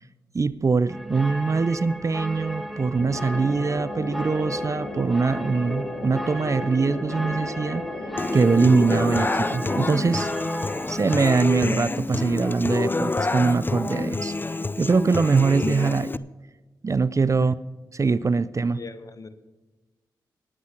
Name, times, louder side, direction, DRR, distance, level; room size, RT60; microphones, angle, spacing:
voice 1, 0.3-7.8 8.3-10.3 10.9-14.3 14.8-16.2 16.8-17.5 17.9-18.8, right 4 dB, 40° right, 18 dB, 0.5 m, -22 dB
sound 1, 0.9-11.2, equal, ahead, 1.6 m, -34 dB
sound 2, 3.0-10.2, left 2 dB, 80° left, 1.8 m, -36 dB
Human voice / Acoustic guitar, 8.2-16.2, left 3 dB, 25° left, 0.5 m, -27 dB
voice 2, 18.7-19.4, left 3 dB, 45° left, 11 dB, 1.1 m, -40 dB
11.0 x 9.4 x 5.9 m, 1.2 s
supercardioid pair, 45°, 8 cm